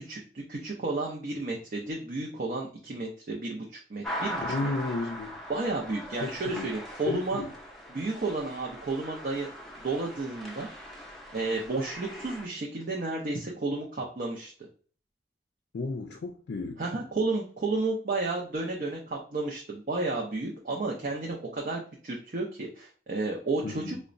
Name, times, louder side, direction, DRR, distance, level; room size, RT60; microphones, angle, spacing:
voice 1, 0.0-4.7 5.5-7.4 7.9-9.5 9.8-10.7 11.3-14.5 16.8-24.0, right 3 dB, 50° right, 0.5 m, -32 dB
sound 1, 4.0-12.5, equal, ahead, 0.5 m, -40 dB
voice 2, 4.5-5.4 6.2-6.7 7.1-7.5 15.7-16.8 23.6-24.0, left 3 dB, 80° left, 0.4 m, -33 dB
3.9 x 2.1 x 2.5 m
head